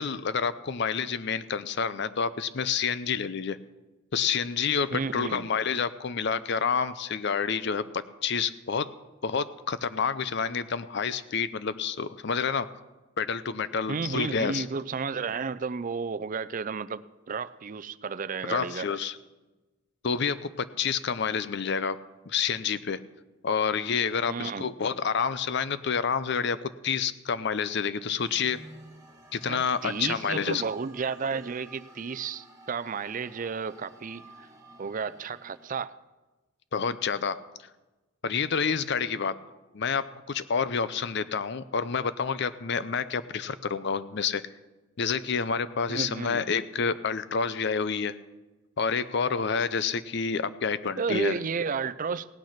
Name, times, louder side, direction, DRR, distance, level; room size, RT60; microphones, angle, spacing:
voice 1, 0.0-3.6 4.1-8.9 9.2-12.7 13.2-14.7 18.4-19.2 20.0-22.0 22.3-23.0 23.4-28.6 29.3-30.6 36.7-37.4 38.2-39.4 39.7-40.0 40.3-44.4 45.0-48.2 48.8-51.4, left 6 dB, 60° left, 15 dB, 0.6 m, -28 dB
voice 2, 4.9-5.5 13.9-18.9 24.3-24.7 29.5-34.5 34.8-35.9 45.9-46.4 51.0-52.3, right 5 dB, 40° right, 15 dB, 0.4 m, -32 dB
sound 1, 28.2-35.7, right 2 dB, 15° right, 1.7 m, -52 dB
17.5 x 9.2 x 5.8 m, 1.1 s
head